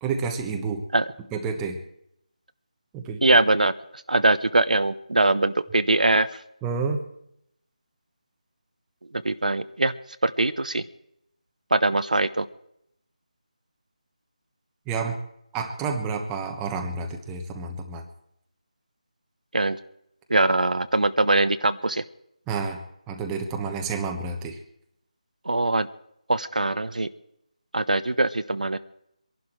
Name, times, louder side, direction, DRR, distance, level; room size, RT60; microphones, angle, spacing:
voice 1, 0.0-0.8 1.3-1.8 2.9-3.2 6.6-7.0 14.9-15.2 15.5-18.0 22.5-24.6, right 5 dB, 10° right, 3 dB, 1.2 m, -29 dB
voice 2, 3.2-3.7 4.1-6.3 9.2-9.9 10.2-10.8 11.7-12.5 19.5-19.8 20.3-22.0 25.4-25.9 26.3-27.1 27.7-28.8, right 2 dB, 85° right, 12 dB, 1.0 m, -22 dB
23.5 x 11.5 x 4.6 m, 0.75 s
figure-of-eight pair, 165°, 4 cm